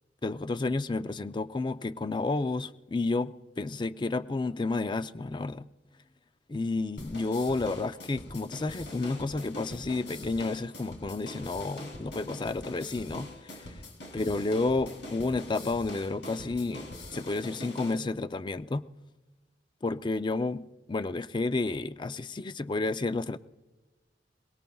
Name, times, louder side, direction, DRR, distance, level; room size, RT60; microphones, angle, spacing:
voice 1, 0.2-5.7 6.5-13.8 14.1-18.8 19.8-23.4, left 3 dB, 25° left, 0.4 m, -31 dB
sound 1, 7.0-17.9, left 1 dB, 90° left, 3.2 m, -44 dB
23.0 x 21.0 x 2.3 m
head